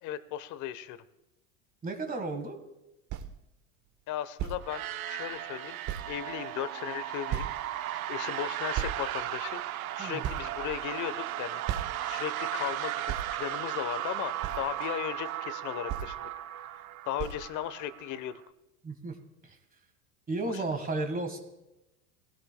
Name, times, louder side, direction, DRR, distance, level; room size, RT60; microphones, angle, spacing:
voice 1, 0.0-1.0 4.1-5.8 6.1-9.6 10.0-11.6 12.0-16.3 17.0-18.3 20.5-20.6, left 11 dB, 45° left, 14 dB, 0.9 m, -36 dB
voice 2, 1.8-2.6 10.0-10.3 18.8-19.1 19.4-19.6 20.3-21.4, right 2 dB, 20° right, 5 dB, 1.5 m, -33 dB
sound 1, 3.1-3.3 4.4-4.6 5.3-5.4 5.9-6.1 7.3-7.7 8.7-9.0 9.7-9.8 10.2-11.1 11.7-12.0 13.1-13.3 14.4-14.6 15.9-16.1 17.2-17.4, right 10 dB, 45° right, 1.0 m, -34 dB
sound 2, 4.6-18.3, right 13 dB, 85° right, 0.7 m, -36 dB
21.0 x 16.5 x 2.2 m, 0.93 s
hypercardioid pair, 95°, 41 cm